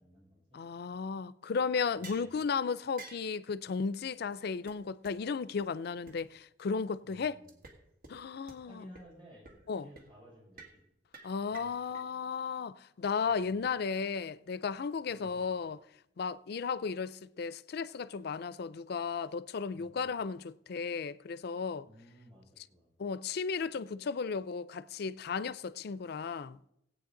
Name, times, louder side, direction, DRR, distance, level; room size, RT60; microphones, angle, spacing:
voice 1, 0.0-0.6 2.0-2.4 7.0-7.6 8.7-10.8 11.5-11.7 13.3-13.7 15.1-15.5 19.7-20.2 21.8-22.9, equal, 30° right, 6.1 m, -56 dB
voice 2, 0.5-7.4 8.1-8.8 9.7-9.9 11.2-15.8 16.2-21.9 23.0-26.6, left 5 dB, 60° left, 0.4 m, -35 dB
sound 1, 2.0-2.3 3.0-3.3 4.0-4.1 4.3-4.4 4.7-4.8 5.0-5.1 5.6-5.7 6.1-6.2 7.5-7.8 8.0-8.1 8.5-8.6 8.9-9.0 9.4-9.7 10.0-10.1 10.6-10.8 11.1-12.0, right 3 dB, 55° right, 1.8 m, -50 dB
18.5 x 8.5 x 3.8 m
head